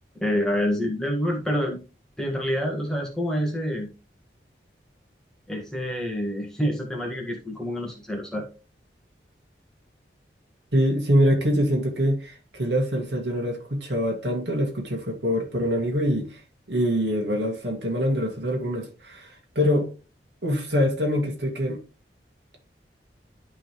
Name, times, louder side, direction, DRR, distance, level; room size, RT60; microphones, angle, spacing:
voice 1, 0.2-1.8 2.2-3.9 5.5-8.5, equal, 5° left, 1.6 m, -27 dB
voice 2, 10.7-16.4 16.7-19.9 20.4-21.8, equal, 90° right, 2.1 m, -24 dB
11.5 x 3.9 x 3.1 m
head